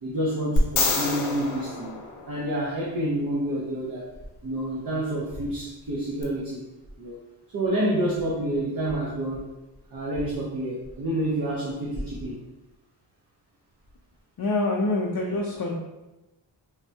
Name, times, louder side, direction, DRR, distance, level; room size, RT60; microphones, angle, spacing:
voice 1, 0.0-2.0 2.3-4.1 4.4-6.6 7.0-7.2 7.5-9.4 9.9-12.4, right 1 dB, 45° right, -5 dB, 0.6 m, -28 dB
sound 1, 0.6-2.8 6.2-6.3, left 2 dB, 80° left, 0.7 m, -27 dB
voice 2, 14.4-15.7, left 2 dB, 50° left, -2 dB, 0.4 m, -25 dB
3.3 x 2.1 x 2.6 m, 1.0 s
wide cardioid pair, 130°, 48 cm